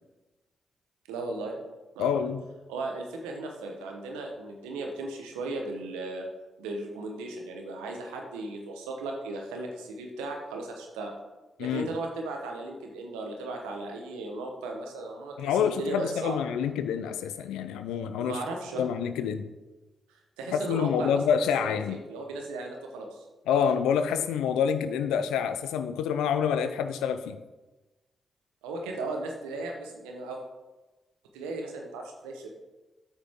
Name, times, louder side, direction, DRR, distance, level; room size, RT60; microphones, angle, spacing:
voice 1, 1.1-1.6 1.9-2.2 2.7-6.2 6.6-11.1 11.6-16.4 18.2-18.8 20.4-21.2 21.6-23.2 28.6-30.4 31.3-32.5, right 2 dB, 90° right, 2 dB, 1.1 m, -36 dB
voice 2, 2.0-2.4 11.6-11.9 15.4-18.4 18.8-19.5 20.5-22.0 23.5-27.4, left 7 dB, 85° left, 10 dB, 0.5 m, -27 dB
9.2 x 6.0 x 3.6 m, 1.1 s
hypercardioid pair, 40°, 0 cm